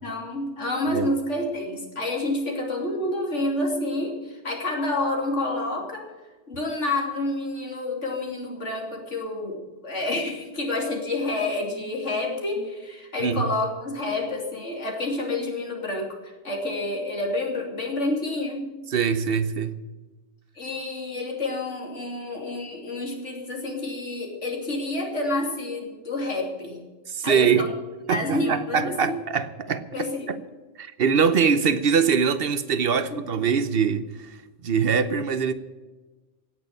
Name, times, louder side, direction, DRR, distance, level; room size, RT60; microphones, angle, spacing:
voice 1, 0.0-6.0 6.5-18.7 20.5-26.8 27.2-27.7 28.1-29.2 29.9-30.4 33.1-33.2, left 2 dB, 90° left, 3.2 m, -29 dB
voice 2, 18.9-19.8 27.1-27.7 28.1-29.8 30.3-30.4 30.8-34.4 34.6-35.5, right 6 dB, 55° right, 1.1 m, -23 dB
17.0 x 6.6 x 10.0 m
omnidirectional pair, 1.2 m